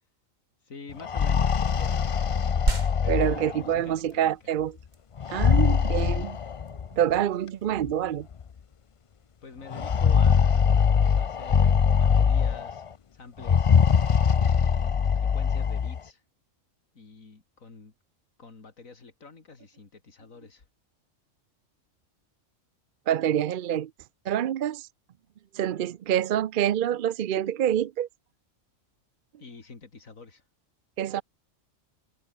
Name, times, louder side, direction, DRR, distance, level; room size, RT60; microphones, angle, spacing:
voice 1, 0.6-2.0 3.0-4.4 9.4-10.9 11.2-12.9 13.1-13.7 14.3-16.2 16.9-17.9 18.4-20.6 29.4-30.4, left 4 dB, 90° left, 3.1 m, -47 dB
sound 1, 0.9-3.8 5.2-6.9 7.9-8.0 8.3-8.4 9.7-12.8 13.4-16.0, left 7 dB, 60° left, 0.3 m, -22 dB
sound 2, 2.7-12.6, right 2 dB, 35° right, 3.0 m, -38 dB
voice 2, 3.1-4.8 5.3-6.4 6.9-8.3 23.1-23.9 24.3-24.9 25.5-28.1 31.0-31.2, right 10 dB, 60° right, 0.5 m, -26 dB
omnidirectional pair, 1.4 m